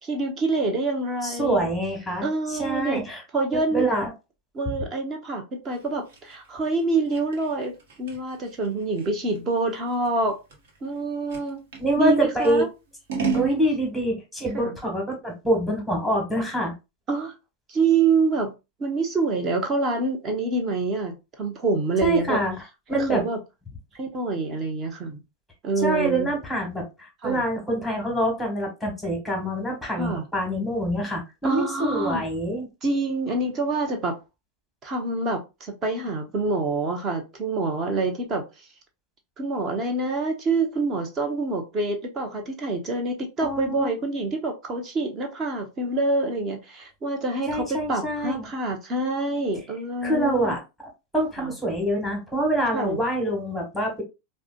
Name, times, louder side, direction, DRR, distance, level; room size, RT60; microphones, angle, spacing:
voice 1, 0.0-1.7 2.2-3.0 3.3-3.9 4.5-10.4 10.8-11.6 12.0-12.7 14.5-14.7 17.1-17.3 17.7-18.5 18.8-22.4 22.9-23.4 23.9-25.2 25.6-26.3 27.2-27.4 30.0-30.2 31.4-32.2 32.8-34.2 34.8-38.4 39.4-50.5 51.4-51.5 52.7-53.0, right 3 dB, 30° right, 1.0 m, -26 dB
voice 2, 1.2-3.2 3.5-4.1 11.8-12.6 13.3-16.7 22.0-22.5 22.9-23.2 25.8-32.7 43.4-43.9 47.5-48.5 50.0-50.6 51.1-54.0, right 1 dB, ahead, 1.6 m, -25 dB
Scissors, 5.7-11.9 12.4-13.6, right 5 dB, 55° right, 1.1 m, -33 dB
4.8 x 2.2 x 2.4 m
figure-of-eight pair, 90°, 0 cm